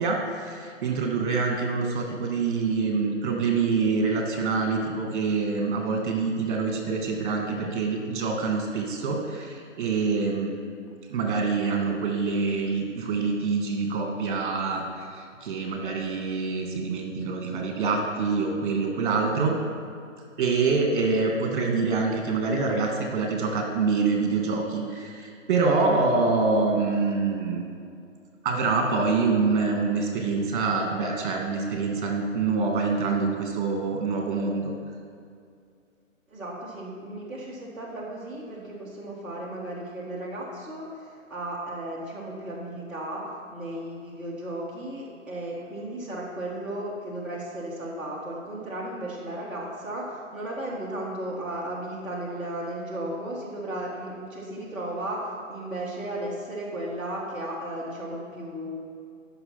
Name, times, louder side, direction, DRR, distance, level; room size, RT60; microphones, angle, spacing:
voice 1, 0.0-10.5 11.1-14.8 15.1-19.6 20.4-27.7 28.4-34.7, right 4 dB, 40° right, 1 dB, 2.2 m, -26 dB
voice 2, 36.3-58.8, right 1 dB, 5° right, -10 dB, 1.5 m, -35 dB
13.5 x 6.2 x 5.9 m, 2.3 s
figure-of-eight pair, 135°, 39 cm